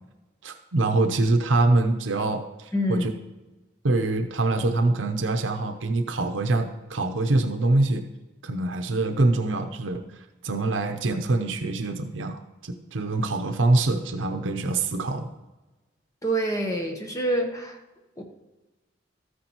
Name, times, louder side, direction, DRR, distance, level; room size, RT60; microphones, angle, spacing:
voice 1, 0.4-3.1 3.8-8.0 8.4-10.0 10.4-15.3, right 2 dB, 85° right, 7 dB, 0.7 m, -24 dB
voice 2, 2.7-3.1 16.2-17.8 18.2-18.3, right 1 dB, 15° left, 2 dB, 1.0 m, -26 dB
13.5 x 9.5 x 3.0 m, 1.1 s
head